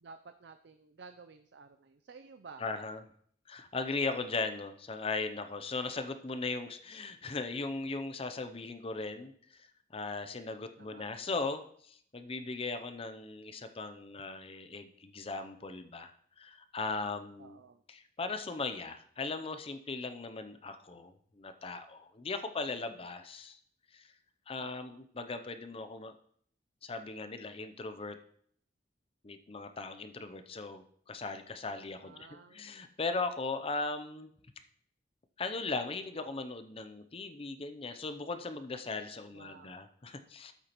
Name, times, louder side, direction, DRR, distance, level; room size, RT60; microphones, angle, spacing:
voice 1, 0.0-2.6 10.8-11.1 17.4-17.8 24.6-25.0 32.0-32.7 39.3-39.8, right 4 dB, 65° right, 8 dB, 0.5 m, -53 dB
voice 2, 2.6-3.0 3.5-9.7 9.9-17.6 17.9-23.6 23.9-24.1 24.5-26.1 26.8-28.2 29.2-34.3 35.4-40.5, left 3 dB, 30° left, 9 dB, 0.6 m, -38 dB
12.5 x 8.1 x 3.0 m, 0.62 s
head